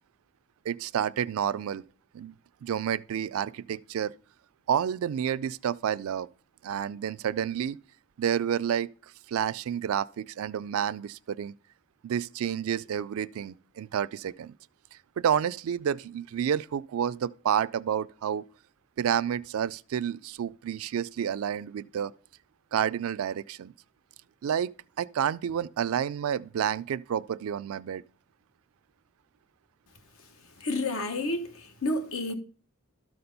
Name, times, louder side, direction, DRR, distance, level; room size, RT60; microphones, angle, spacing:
voice 1, 0.7-1.8 2.1-2.3 2.6-4.1 4.7-6.3 6.6-7.8 8.2-8.9 9.3-11.5 12.0-14.5 15.2-18.4 19.0-22.1 22.7-23.7 24.4-24.7 25.0-28.0, right 9 dB, 75° right, 0.3 m, -29 dB
voice 2, 30.6-32.3, left 2 dB, 70° left, 1.2 m, -30 dB
13.0 x 4.3 x 5.3 m
head